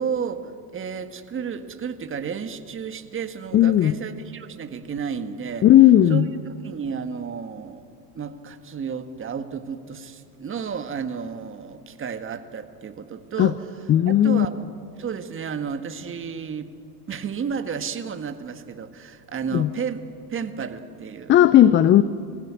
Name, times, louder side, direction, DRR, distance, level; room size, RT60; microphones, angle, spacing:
voice 1, 0.0-5.7 6.1-7.8 8.1-13.7 14.0-14.6 15.0-16.7 17.1-20.0 20.3-21.3, right 6 dB, 25° right, 9 dB, 1.7 m, -32 dB
voice 2, 3.5-4.0 5.6-6.3 13.4-13.5 13.9-14.5 19.5-19.7 21.3-22.0, left 12 dB, 25° left, 15 dB, 0.5 m, -15 dB
24.5 x 16.0 x 9.7 m, 2.4 s
hypercardioid pair, 90°, 49 cm